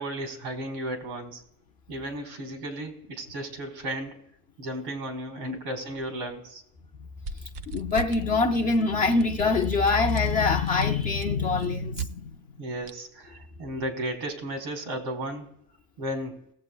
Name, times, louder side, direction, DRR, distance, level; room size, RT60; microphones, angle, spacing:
voice 1, 0.0-1.4 1.9-4.2 4.6-6.6 12.6-15.5 16.0-16.4, right 1 dB, 85° right, 3.5 m, -34 dB
sound 1, 7.2-8.3 8.5-8.8 9.1-12.1 12.9-13.0, right 5 dB, 45° right, 0.6 m, -38 dB
voice 2, 7.7-12.3, left 4 dB, 20° left, 0.3 m, -24 dB
19.5 x 7.8 x 2.2 m
cardioid pair, 145°, 49 cm